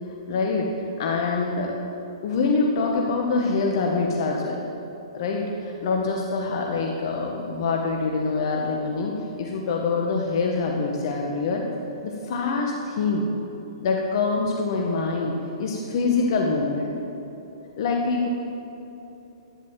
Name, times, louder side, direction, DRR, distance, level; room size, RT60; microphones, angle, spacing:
voice 1, 0.3-0.7 1.0-1.7 2.2-4.6 5.1-11.6 12.0-13.3 13.8-16.9 17.8-18.3, left 4 dB, 55° left, 0 dB, 1.6 m, -25 dB
11.5 x 10.5 x 7.7 m, 2.9 s
hypercardioid pair, 125°, 3 cm